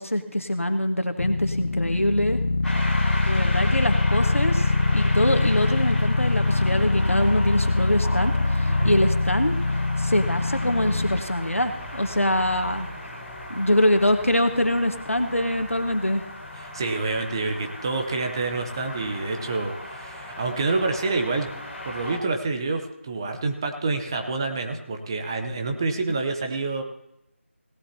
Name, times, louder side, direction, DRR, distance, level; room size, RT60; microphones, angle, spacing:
voice 1, 0.0-2.4 3.2-4.7 4.9-9.6 10.0-12.9 13.5-16.2 26.1-26.2, left 1 dB, 85° left, 6 dB, 1.7 m, -24 dB
sound 1, 1.2-11.2, left 3 dB, 70° left, 0.4 m, -23 dB
sound 2, 2.6-22.2, left 1 dB, 5° left, 1.2 m, -36 dB
voice 2, 16.6-21.5 21.8-26.8, right 3 dB, 20° right, 5 dB, 0.8 m, -27 dB
17.5 x 11.0 x 2.9 m, 0.84 s
figure-of-eight pair, 165°, 7 cm